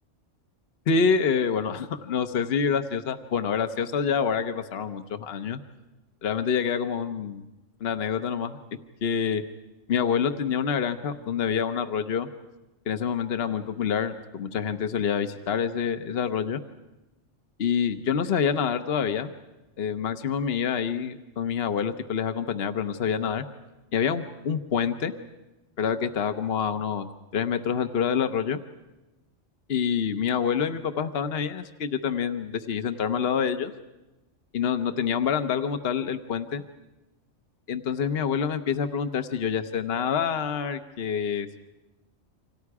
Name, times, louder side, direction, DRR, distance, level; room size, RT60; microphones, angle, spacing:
voice 1, 0.9-5.6 6.2-7.4 7.8-8.6 9.0-9.4 9.9-12.3 12.9-16.6 17.6-19.3 19.8-23.4 23.9-25.1 25.8-27.1 27.3-28.6 29.7-33.7 34.5-36.6 37.7-41.6, left 7 dB, 55° left, 9 dB, 1.1 m, -27 dB
29.0 x 26.0 x 4.8 m, 1.0 s
omnidirectional pair, 1.3 m